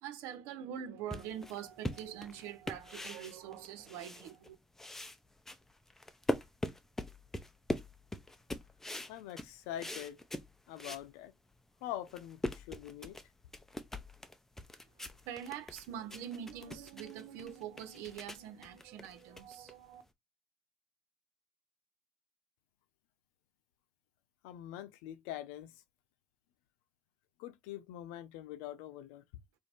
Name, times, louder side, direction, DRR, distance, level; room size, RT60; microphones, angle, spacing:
voice 1, 0.0-4.6 15.2-20.0, right 9 dB, 75° right, 1.2 m, -44 dB
sound 1, 1.1-4.5 4.8-11.1 11.5-11.6 12.0-20.1, left 1 dB, 10° left, 0.6 m, -42 dB
voice 2, 9.1-10.2 10.7-11.3 11.8-13.2 24.4-25.8 27.4-29.2, left 12 dB, 85° left, 0.7 m, -44 dB
3.2 x 2.6 x 4.5 m
cardioid pair, 115°, 4 cm